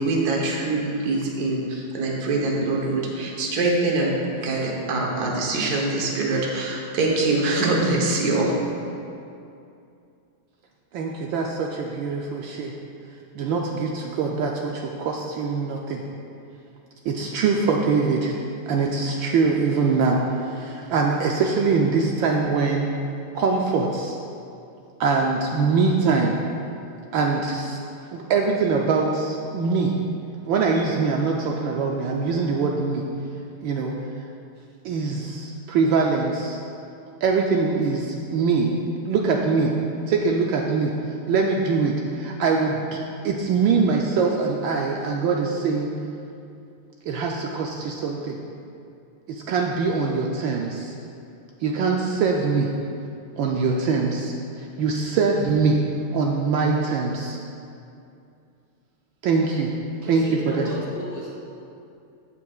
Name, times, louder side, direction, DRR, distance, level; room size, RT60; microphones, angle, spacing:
voice 1, 0.0-4.2 4.4-8.5, right 2 dB, 55° right, -1 dB, 1.4 m, -24 dB
voice 2, 10.9-12.7 13.3-16.0 17.0-18.3 18.7-22.9 23.3-24.2 25.0-26.4 27.1-27.8 28.1-30.0 30.5-33.1 33.6-33.9 34.8-36.6 37.2-39.8 40.1-45.9 47.1-48.4 49.3-50.9 51.6-52.7 53.4-55.8 56.1-57.4 59.2-59.7 60.0-60.7, right 4 dB, 75° right, 0 dB, 1.2 m, -23 dB
voice 3, 60.0-61.3, equal, 35° left, -6 dB, 1.0 m, -33 dB
15.0 x 5.7 x 2.4 m, 2.6 s
omnidirectional pair, 2.4 m